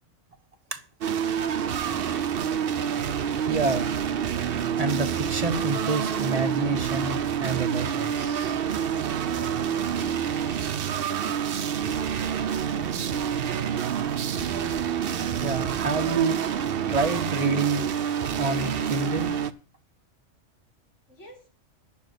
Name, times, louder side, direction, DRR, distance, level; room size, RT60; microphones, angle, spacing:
sound 1, 1.0-19.5, right 8 dB, 55° right, 0.8 m, -27 dB
voice 1, 3.4-3.9 4.8-8.6 15.4-16.4 16.9-17.9 18.4-19.3, right 4 dB, 30° right, 7 dB, 1.2 m, -27 dB
voice 2, 10.1-10.8 11.2-13.2 21.1-21.5, left 1 dB, 70° left, 0 dB, 4.2 m, -51 dB
10.5 x 7.3 x 8.3 m, 0.38 s
omnidirectional pair, 1.3 m